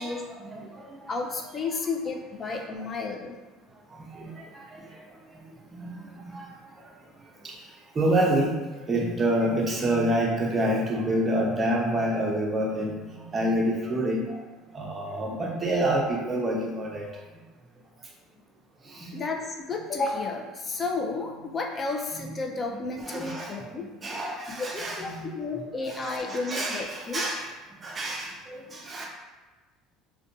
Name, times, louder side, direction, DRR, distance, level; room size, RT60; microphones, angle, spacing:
voice 1, 0.0-1.0 4.1-4.3 5.8-6.5 8.0-8.5 8.9-13.0 13.3-14.4 14.7-17.0 19.0-19.2 22.1-22.3 23.0-23.5 24.0-25.3 25.9-27.4 27.8-29.0, right 1 dB, 25° right, -2 dB, 0.6 m, -27 dB
voice 2, 1.1-3.4 19.1-23.8 24.2-27.3, left 3 dB, 30° left, 1 dB, 0.4 m, -32 dB
2.5 x 2.2 x 2.6 m, 1.2 s
supercardioid pair, 90°, 0 cm